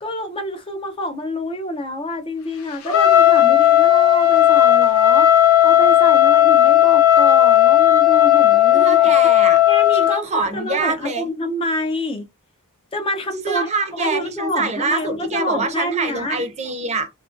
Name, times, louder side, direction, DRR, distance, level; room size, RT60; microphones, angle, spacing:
voice 1, 0.0-5.3 5.6-9.1 9.7-12.3 12.9-16.4, left 1 dB, 25° left, 0.4 m, -27 dB
Trumpet, 2.9-10.2, left 12 dB, 75° left, 0.6 m, -14 dB
voice 2, 8.7-9.6 10.0-11.3 13.4-17.1, right 3 dB, 30° right, 0.5 m, -24 dB
2.8 x 2.4 x 2.4 m
head